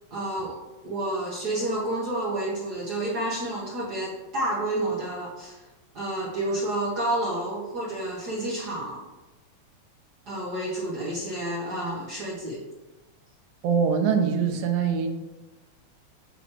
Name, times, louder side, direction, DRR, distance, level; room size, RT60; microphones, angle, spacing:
voice 1, 0.1-0.6 0.8-5.6 5.9-9.0 10.3-12.6, right 1 dB, 50° right, -5 dB, 1.2 m, -30 dB
voice 2, 13.6-15.1, right 6 dB, 80° right, 5 dB, 2.1 m, -23 dB
7.9 x 3.0 x 6.0 m, 1.1 s
omnidirectional pair, 3.4 m